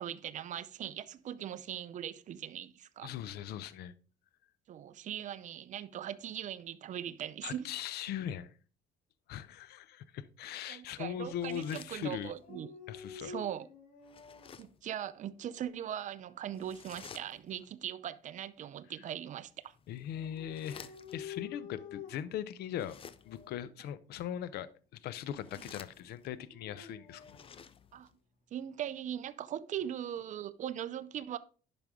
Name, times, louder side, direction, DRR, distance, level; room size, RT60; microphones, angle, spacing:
voice 1, 0.0-3.1 4.7-7.7 10.7-12.7 13.2-13.7 14.6-19.7 27.9-28.1 28.5-31.4, right 10 dB, 45° right, 0.6 m, -40 dB
voice 2, 3.0-3.9 7.4-8.5 9.3-12.3 12.9-13.3 19.9-27.4, left 10 dB, 70° left, 0.6 m, -40 dB
sound 1, 11.3-12.5 14.0-14.9 16.5-17.7 19.5-21.3 22.7-23.5 25.2-26.4 27.1-28.2, left 7 dB, 35° left, 0.6 m, -54 dB
Dog, 12.4-14.6 15.2-16.0 20.1-22.4 23.2-23.7 26.2-27.5, left 7 dB, 55° left, 2.7 m, -49 dB
11.0 x 5.2 x 3.6 m
cardioid pair, 110°, 17 cm